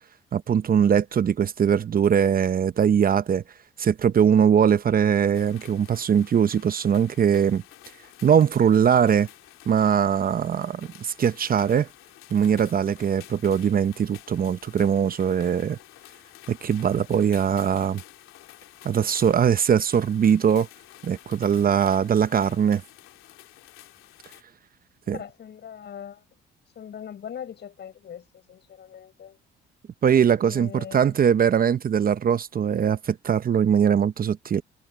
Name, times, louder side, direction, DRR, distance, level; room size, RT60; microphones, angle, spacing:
voice 1, 0.3-3.4 3.8-7.6 8.2-9.3 9.7-11.9 12.3-15.8 16.5-18.0 18.8-20.7 21.0-22.8 25.1-25.2 30.0-34.6, right 8 dB, 45° right, 0.9 m, -21 dB
sound 1, 5.3-24.4, left 15 dB, 80° left, 2.9 m, -49 dB
voice 2, 25.1-26.2 26.7-29.4 30.4-31.3, left 8 dB, 55° left, 7.5 m, -41 dB
supercardioid pair, 80°, 21 cm